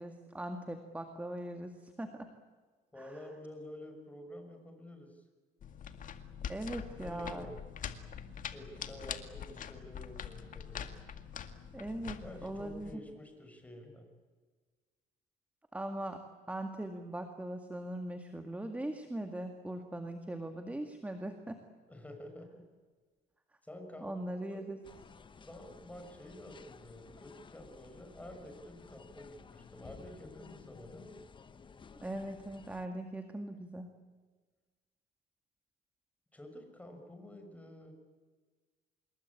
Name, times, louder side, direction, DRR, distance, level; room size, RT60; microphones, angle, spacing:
voice 1, 0.0-2.3 3.0-3.3 6.5-7.5 11.7-13.0 15.7-21.6 24.0-24.8 32.0-33.9, right 1 dB, 10° right, 6 dB, 2.0 m, -40 dB
voice 2, 2.9-5.2 6.9-7.6 8.5-10.9 12.2-14.1 21.9-22.6 23.6-24.1 24.5-24.7 25.4-31.2 36.3-37.9, left 1 dB, 10° left, 5 dB, 6.4 m, -49 dB
sound 1, 5.6-12.9, left 8 dB, 50° left, 2.0 m, -44 dB
sound 2, 24.8-32.9, left 5 dB, 30° left, 1.2 m, -55 dB
26.5 x 21.5 x 8.6 m, 1.4 s
cardioid pair, 110°, 17 cm